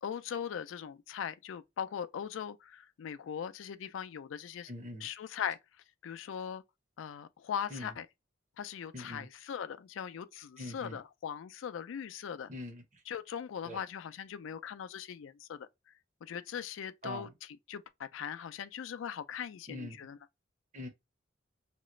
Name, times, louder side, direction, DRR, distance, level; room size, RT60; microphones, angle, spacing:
voice 1, 0.0-4.7 5.0-5.6 6.0-6.6 7.0-8.1 8.6-12.5 13.1-15.7 16.2-17.3 17.7-20.2, left 8 dB, 80° left, 0.3 m, -40 dB
voice 2, 4.7-5.1 7.7-7.9 8.9-9.3 10.6-11.0 12.5-13.0 13.6-13.8 17.0-17.3 19.7-20.1 20.7-20.9, left 1 dB, 40° right, 0.7 m, -43 dB
2.9 x 2.4 x 3.0 m
head